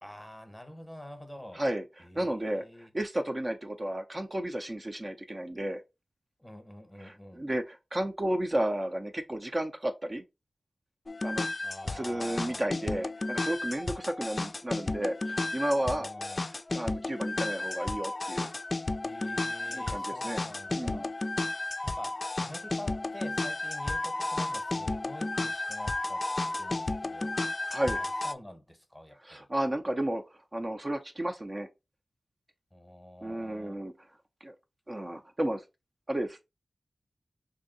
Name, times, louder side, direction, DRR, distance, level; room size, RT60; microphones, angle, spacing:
voice 1, 0.0-1.6 2.0-2.9 6.4-7.4 11.6-12.7 15.8-16.4 19.0-21.1 21.8-26.3 26.6-27.4 28.0-29.5 32.7-33.8, left 1 dB, 10° left, 0.9 m, -47 dB
voice 2, 1.5-5.8 7.0-10.2 11.2-11.5 11.8-16.1 16.5-18.5 19.7-20.4 20.7-21.1 27.7-28.0 29.2-30.2 30.5-31.7 33.2-33.9 34.4-34.5 34.9-35.6 36.1-36.4, right 1 dB, 35° right, 0.5 m, -33 dB
sound 1, 11.1-28.3, left 2 dB, 45° left, 0.4 m, -33 dB
3.3 x 2.7 x 3.9 m
cardioid pair, 55°, 0 cm